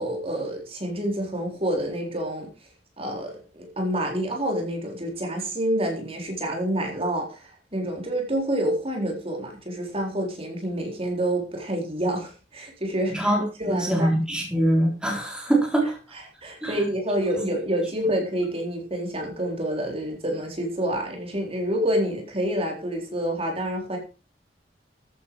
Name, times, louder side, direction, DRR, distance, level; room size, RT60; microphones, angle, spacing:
voice 1, 0.0-2.5 3.0-13.2 13.6-14.1 16.1-24.0, right 1 dB, 35° right, 1 dB, 4.0 m, -28 dB
voice 2, 13.1-16.0 16.6-16.8, right 1 dB, 5° right, -1 dB, 3.9 m, -23 dB
14.0 x 9.2 x 4.8 m, 0.33 s
head